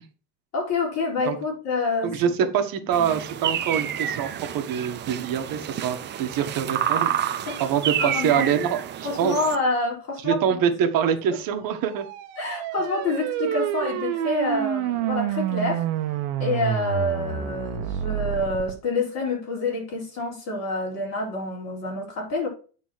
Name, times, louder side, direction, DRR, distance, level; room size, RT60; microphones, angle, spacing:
voice 1, 0.5-2.1 2.9-3.2 7.5-7.6 8.0-8.5 9.0-10.5 12.4-15.8 16.4-22.5, left 3 dB, 35° left, -1 dB, 4.3 m, -27 dB
voice 2, 2.0-7.1 7.4-9.3 10.2-12.1, right 8 dB, 45° right, 6 dB, 1.6 m, -25 dB
sound 1, 2.9-9.6, right 10 dB, 25° right, 0.6 m, -29 dB
sound 2, 11.8-18.7, right 11 dB, 65° right, 1.4 m, -28 dB
9.4 x 4.1 x 5.9 m, 0.37 s
supercardioid pair, 145°, 48 cm